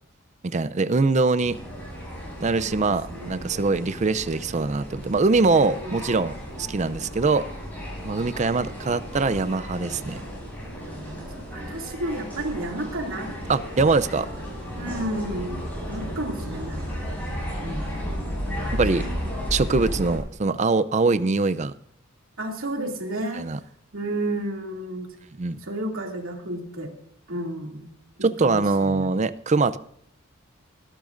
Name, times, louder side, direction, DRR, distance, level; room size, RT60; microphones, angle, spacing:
voice 1, 0.4-1.6 2.4-7.4 8.0-10.2 13.5-14.3 18.7-19.0 19.5-21.7 23.3-23.6 25.4-25.6 28.2-29.8, right 3 dB, 35° right, 13 dB, 0.5 m, -23 dB
sound 1, 1.4-20.2, equal, 10° left, 7.0 m, -34 dB
voice 2, 2.6-3.6 5.5-6.0 10.8-11.2 11.5-13.3 14.8-16.8 17.6-17.9 18.9-19.0 22.4-23.5 23.9-25.1 25.6-26.9 27.3-27.9 28.2-29.1, right 1 dB, 90° right, 1 dB, 2.5 m, -32 dB
21.5 x 12.0 x 2.6 m, 0.68 s
head